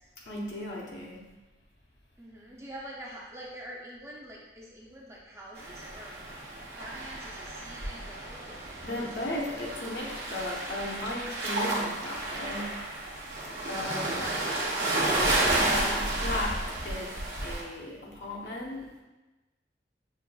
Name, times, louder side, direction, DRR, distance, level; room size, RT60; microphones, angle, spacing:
voice 1, 0.3-1.2 8.8-12.7 13.7-14.2 15.7-16.6 16.8-17.1 17.4-18.9, left 1 dB, 70° left, -3 dB, 0.8 m, -36 dB
voice 2, 2.2-8.6 8.9-9.3 14.0-15.0, right 1 dB, 15° right, -4 dB, 0.5 m, -45 dB
sound 1, 5.6-17.6, right 2 dB, 70° right, 0.8 m, -31 dB
6.0 x 2.5 x 2.2 m, 1.1 s
head